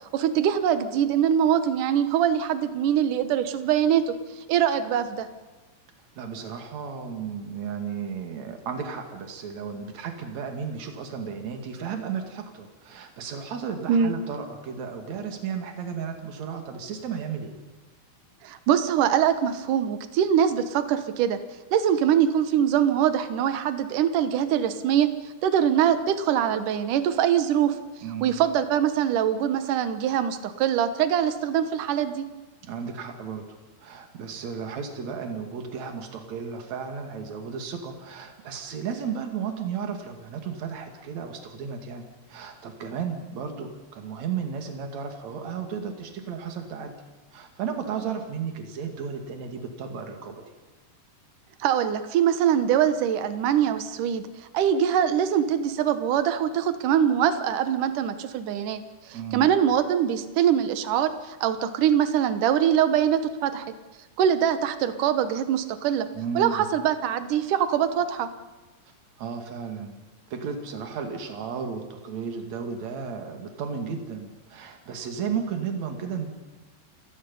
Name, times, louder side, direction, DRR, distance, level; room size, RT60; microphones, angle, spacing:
voice 1, 0.1-4.1 4.5-5.3 13.9-14.1 18.4-21.4 21.7-25.1 25.4-27.7 28.2-32.3 51.6-54.3 54.5-58.8 59.1-63.6 64.2-66.1 66.4-68.3, right 9 dB, 65° right, 10 dB, 2.3 m, -23 dB
voice 2, 6.1-17.5 28.0-28.3 32.7-33.4 33.8-46.9 47.3-50.4 59.1-59.5 66.1-66.7 69.2-70.0 70.3-76.3, right 6 dB, 45° right, 4 dB, 3.2 m, -34 dB
29.0 x 18.0 x 5.5 m, 1.2 s
omnidirectional pair, 4.8 m